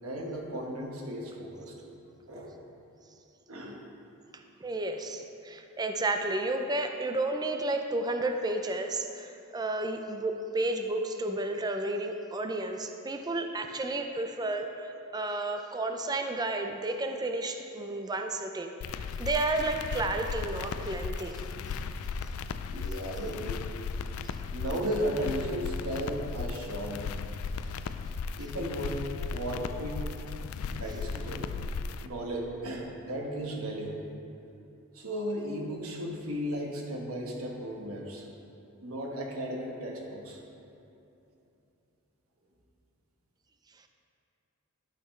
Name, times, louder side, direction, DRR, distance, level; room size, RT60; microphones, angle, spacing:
voice 1, 0.0-1.7 2.3-2.5 3.5-3.8 22.7-23.7 24.5-27.9 28.4-30.0 30.6-31.5 32.0-34.0 34.9-38.3 38.8-40.4, equal, 90° right, 0 dB, 1.2 m, -35 dB
voice 2, 4.3-21.4, right 2 dB, 20° right, 5 dB, 0.4 m, -32 dB
sound 1, 18.8-32.1, left 5 dB, 80° left, 0.3 m, -36 dB
11.5 x 5.8 x 3.2 m, 2.8 s
head